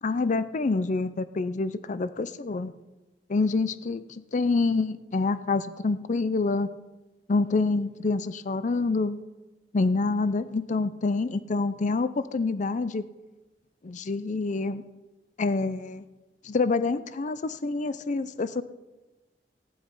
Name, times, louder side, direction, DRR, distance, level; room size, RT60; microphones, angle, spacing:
voice 1, 0.0-2.7 3.3-6.7 7.3-9.2 9.7-13.0 13.8-14.8 15.4-16.0 16.4-18.6, left 3 dB, 45° left, 13 dB, 0.5 m, -27 dB
15.5 x 10.5 x 5.4 m, 1.1 s
head